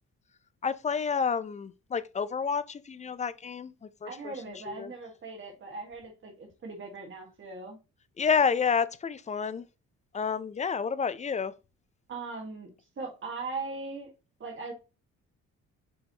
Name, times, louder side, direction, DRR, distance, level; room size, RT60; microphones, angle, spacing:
voice 1, 0.6-4.3 4.7-4.9 8.2-9.6 10.1-11.5, left 6 dB, 25° left, 0.4 m, -29 dB
voice 2, 4.0-7.8 12.1-12.7 13.0-14.1 14.4-14.7, right 3 dB, 40° right, 1.5 m, -39 dB
5.6 x 3.1 x 2.8 m
cardioid pair, 90°, 30 cm